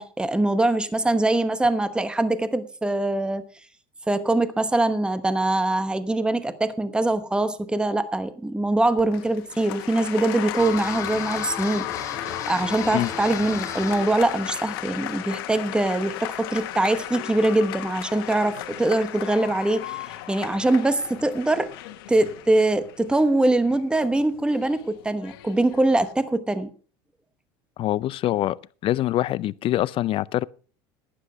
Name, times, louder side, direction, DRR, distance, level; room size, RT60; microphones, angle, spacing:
voice 1, 0.0-3.4 4.1-11.9 12.5-21.7 22.1-26.7, right 2 dB, 5° right, 1.0 m, -23 dB
Applause, 9.0-26.1, left 14 dB, 85° left, 1.3 m, -35 dB
sound 1, 10.6-15.5, left 4 dB, 25° left, 3.5 m, -39 dB
voice 2, 27.8-28.6 28.8-30.5, left 14 dB, 45° left, 0.5 m, -24 dB
11.5 x 10.0 x 5.1 m
supercardioid pair, 105°, 12 cm